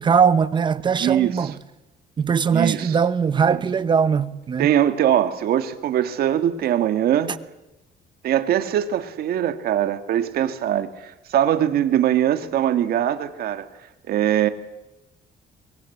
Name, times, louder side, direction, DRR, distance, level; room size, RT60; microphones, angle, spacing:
voice 1, 0.0-1.5 2.2-4.7, right 6 dB, 25° right, 0.8 m, -20 dB
voice 2, 1.0-1.5 2.5-3.0 3.4-3.6 4.6-7.3 8.2-13.7 14.1-14.5, right 11 dB, 60° right, 1.9 m, -22 dB
24.0 x 23.0 x 8.5 m
cardioid pair, 155°, 18 cm